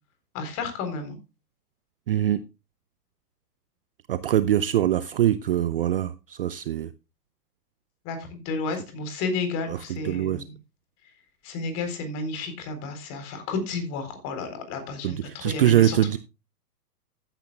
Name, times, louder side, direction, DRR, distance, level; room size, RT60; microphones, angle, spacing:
voice 1, 0.3-1.2 8.0-10.5 11.4-16.2, left 3 dB, 30° left, 8 dB, 4.0 m, -32 dB
voice 2, 2.1-2.4 4.1-6.9 9.7-10.4 15.0-16.2, right 11 dB, 35° right, 16 dB, 0.5 m, -23 dB
15.0 x 10.0 x 2.4 m, 0.27 s
figure-of-eight pair, 120°, 49 cm